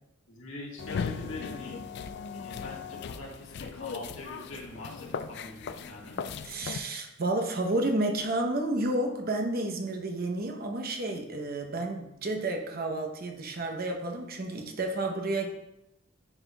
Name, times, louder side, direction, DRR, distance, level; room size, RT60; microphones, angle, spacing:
voice 1, 0.3-1.8 2.3-6.2, left 2 dB, 85° left, -2 dB, 1.6 m, -43 dB
sound 1, 0.8-6.8, left 6 dB, 55° left, 0.3 m, -38 dB
voice 2, 6.4-15.5, right 2 dB, 50° right, 4 dB, 0.8 m, -31 dB
9.7 x 4.3 x 2.3 m, 0.87 s
head